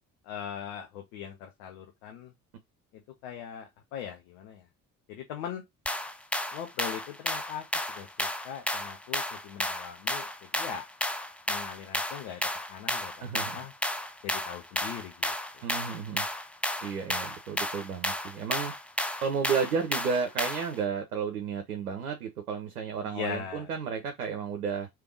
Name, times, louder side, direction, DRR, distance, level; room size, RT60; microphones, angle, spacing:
voice 1, 0.2-2.3 2.9-4.6 5.1-5.6 6.5-7.6 7.9-10.9 11.5-12.4 12.7-13.3 13.5-13.7 14.2-15.6 23.0-23.7, left 9 dB, 60° left, 0.9 m, -40 dB
sound 1, 5.9-20.8, left 1 dB, 5° left, 0.4 m, -32 dB
voice 2, 13.2-13.6 15.6-16.2 16.8-18.7 19.2-24.9, right 6 dB, 80° right, 0.8 m, -32 dB
3.4 x 3.3 x 4.6 m
figure-of-eight pair, 50°, 43 cm